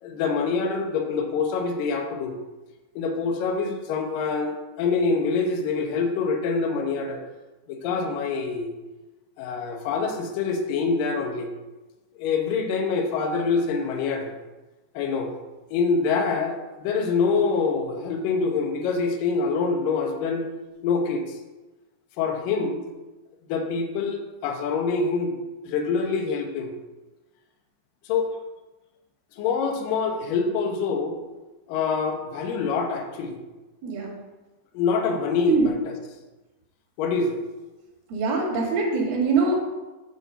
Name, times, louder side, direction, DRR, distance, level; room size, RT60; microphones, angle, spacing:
voice 1, 0.0-2.4 3.0-7.2 7.7-8.7 9.4-11.5 12.2-14.3 14.9-15.3 15.7-20.4 20.8-21.4 22.2-22.8 23.5-25.3 25.6-26.7 28.1-28.4 29.4-31.2 31.7-33.4 34.7-35.9 37.0-37.4, left 4 dB, 70° left, 3 dB, 2.4 m, -25 dB
voice 2, 33.8-34.2 35.5-35.7 38.1-39.6, right 4 dB, 75° right, 0 dB, 3.5 m, -23 dB
8.5 x 4.4 x 6.8 m, 1.1 s
omnidirectional pair, 4.4 m